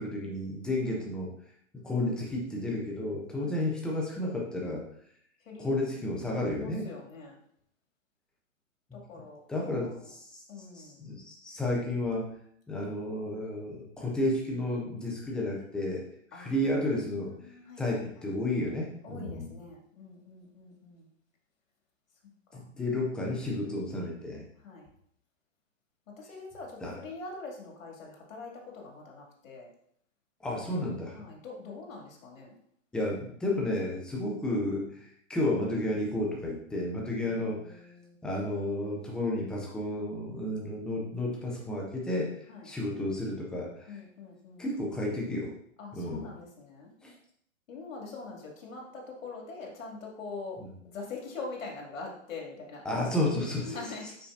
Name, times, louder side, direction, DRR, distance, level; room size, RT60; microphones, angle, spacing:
voice 1, 0.0-1.3 1.8-4.8 5.6-6.9 8.9-9.0 9.5-12.3 12.7-16.0 16.3-17.3 17.8-19.5 22.5-24.4 26.8-27.0 30.4-31.2 32.9-37.8 38.2-42.3 42.6-44.0 44.6-45.5 45.9-46.3 47.0-47.1 50.6-50.7 52.9-53.8 54.0-54.1, left 1 dB, ahead, -2 dB, 0.4 m, -32 dB
voice 2, 5.4-5.9 6.6-7.4 8.9-10.1 10.5-11.0 16.3-16.6 17.3-18.4 19.0-21.1 22.5-22.6 24.6-24.9 26.2-29.7 31.2-32.5 37.2-38.2 42.5-42.7 43.9-44.7 45.8-46.9 47.7-52.8 53.6-54.0, left 3 dB, 75° left, 0 dB, 2.6 m, -44 dB
8.0 x 5.8 x 2.6 m, 0.68 s
hypercardioid pair, 135°, 40 cm